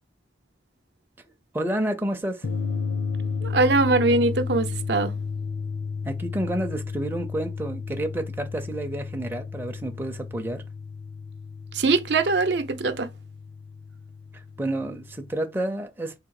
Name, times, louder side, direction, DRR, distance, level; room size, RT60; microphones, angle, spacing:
voice 1, 1.5-2.5 6.0-10.6 14.3-16.1, right 1 dB, 10° right, 0.5 m, -30 dB
sound 1, 2.4-15.4, left 5 dB, 80° left, 1.0 m, -33 dB
voice 2, 3.4-5.1 11.7-13.1, right 3 dB, 65° right, 0.6 m, -22 dB
3.7 x 2.7 x 4.7 m
head